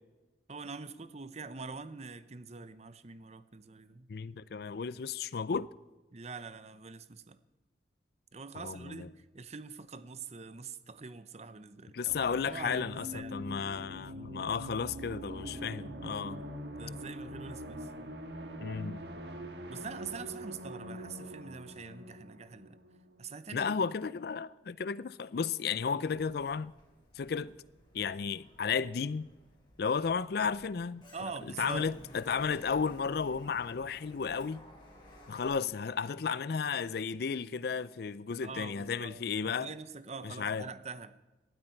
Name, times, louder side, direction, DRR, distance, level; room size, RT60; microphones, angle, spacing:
voice 1, 0.5-4.1 6.1-7.4 8.3-12.1 12.4-13.4 16.7-17.9 19.7-22.8 23.2-23.8 31.1-31.9 38.4-41.2, right 4 dB, 40° right, 0.7 m, -44 dB
voice 2, 4.1-5.7 8.6-9.1 11.9-16.4 18.6-19.0 23.5-26.7 27.2-27.5 27.9-29.3 29.8-31.0 31.4-34.6 35.3-39.7 40.2-40.7, left 6 dB, 60° left, 0.4 m, -33 dB
sound 1, 12.1-23.6, equal, 65° right, 1.7 m, -44 dB
Sliding door, 26.1-35.5, left 1 dB, 25° left, 4.9 m, -55 dB
18.5 x 13.0 x 4.6 m
head